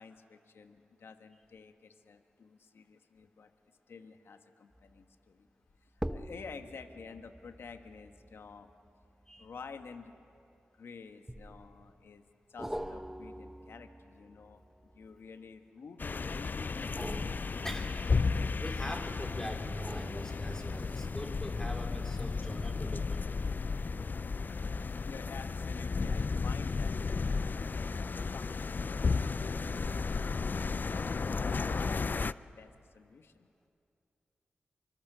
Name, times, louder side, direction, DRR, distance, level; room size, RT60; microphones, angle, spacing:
voice 1, 0.0-3.5 3.9-5.5 6.1-8.7 9.4-10.1 10.7-12.2 12.5-16.5 25.0-27.9 28.3-30.2 30.5-33.5, left 5 dB, 75° left, 8 dB, 1.2 m, -50 dB
sound 1, 4.7-5.1 5.9-10.6 11.3-11.9 12.6-15.6 16.8-18.9 19.6-21.0 21.5-21.6, equal, 5° right, 1.0 m, -45 dB
sound 2, 16.0-32.3, left 4 dB, 50° left, 0.4 m, -33 dB
voice 2, 18.6-23.4, equal, 15° left, 2 dB, 3.9 m, -42 dB
24.5 x 23.0 x 6.7 m, 2.6 s
cardioid pair, 45°, 4 cm